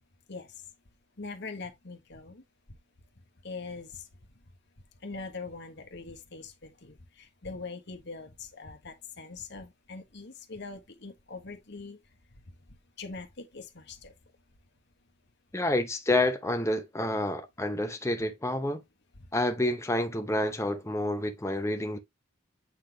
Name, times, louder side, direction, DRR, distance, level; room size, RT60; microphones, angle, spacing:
voice 1, 1.2-2.4 3.4-4.1 5.0-12.0 12.4-14.1 19.2-19.3, left 4 dB, 55° left, 1.3 m, -42 dB
voice 2, 15.5-18.8 19.3-22.0, left 1 dB, 15° left, 0.7 m, -28 dB
8.4 x 4.1 x 2.9 m
head